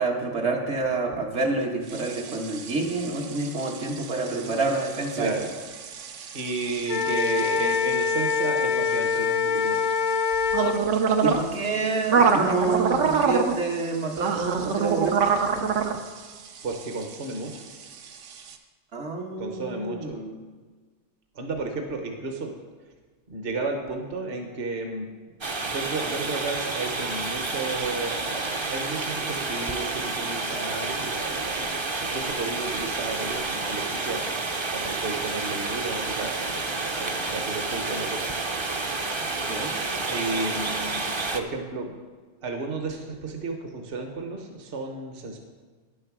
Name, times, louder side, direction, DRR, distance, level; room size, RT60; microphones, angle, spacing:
voice 1, 0.0-5.3 11.2-15.2 18.9-20.4 39.4-39.7, right 3 dB, 70° right, 0 dB, 1.5 m, -28 dB
sound 1, 1.9-18.6, right 6 dB, 90° right, 1.1 m, -28 dB
voice 2, 5.2-5.5 6.3-9.9 16.6-17.7 19.4-20.2 21.3-22.5 23.3-25.1 25.6-31.7 32.0-34.2 34.7-36.6 37.0-38.3 40.1-41.9 42.4-45.4, right 3 dB, 55° right, 3 dB, 1.2 m, -32 dB
Wind instrument woodwind instrument, 6.9-10.8, left 6 dB, 80° left, 0.9 m, -24 dB
sound 2, 25.4-41.4, right 3 dB, 35° right, 0.5 m, -30 dB
10.0 x 7.1 x 6.0 m, 1.5 s
omnidirectional pair, 1.2 m